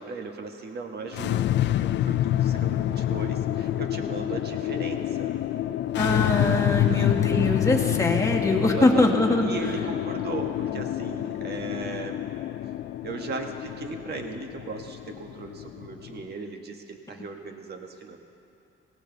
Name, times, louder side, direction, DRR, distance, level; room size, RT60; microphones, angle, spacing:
voice 1, 0.0-1.4 1.8-5.3 6.9-7.1 7.4-8.0 8.7-9.1 9.4-12.2 13.0-18.2, right 4 dB, 55° right, 4 dB, 1.6 m, -37 dB
sound 1, 1.0-16.3, left 12 dB, 65° left, 0.4 m, -27 dB
voice 2, 6.0-9.4, left 2 dB, 15° left, 0 dB, 1.7 m, -23 dB
18.5 x 16.0 x 4.0 m, 2.6 s
cardioid pair, 90°, 20 cm